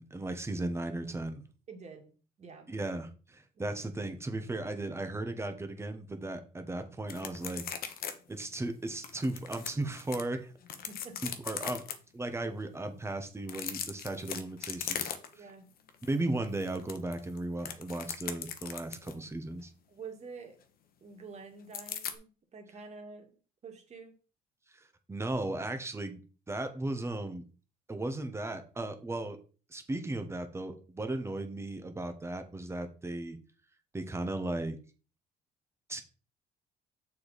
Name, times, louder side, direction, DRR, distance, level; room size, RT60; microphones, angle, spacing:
voice 1, 0.0-1.4 2.7-7.6 8.3-10.5 11.2-11.8 12.1-15.1 15.4-15.5 16.0-19.7 24.7-26.2 26.5-27.4 27.9-29.4 29.7-33.4 33.9-34.8 35.9-36.0, right 2 dB, 15° right, 8 dB, 1.2 m, -36 dB
voice 2, 1.7-2.7 3.5-3.8 10.9-11.3 15.3-15.7 19.9-20.6 21.0-23.3 23.6-24.2, right 4 dB, 40° right, 3 dB, 2.1 m, -48 dB
sound 1, 7.1-8.1 8.4-8.5 9.0-10.2 10.6-11.9 13.4-15.5 15.9-16.1 16.4-19.2 21.7-22.2, left 9 dB, 60° left, 1.1 m, -38 dB
6.9 x 5.1 x 4.1 m, 0.36 s
cardioid pair, 110°, 17 cm